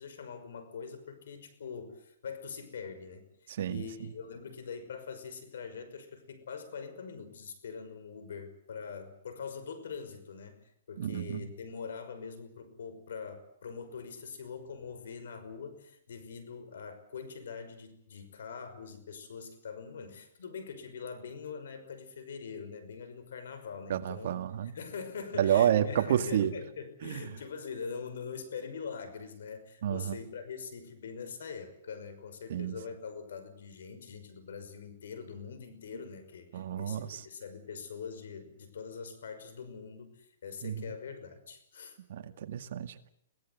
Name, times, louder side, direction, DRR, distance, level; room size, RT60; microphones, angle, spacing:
voice 1, 0.0-24.4 24.6-42.4, left 6 dB, 75° left, 11 dB, 5.8 m, -43 dB
voice 2, 3.5-3.9 11.0-11.5 23.9-24.7 25.3-26.5 27.0-27.2 29.8-30.2 32.5-32.8 36.5-37.3 40.6-40.9 42.1-43.1, right 10 dB, 55° right, 8 dB, 2.0 m, -30 dB
23.0 x 17.5 x 9.5 m, 0.71 s
hypercardioid pair, 160°, 0 cm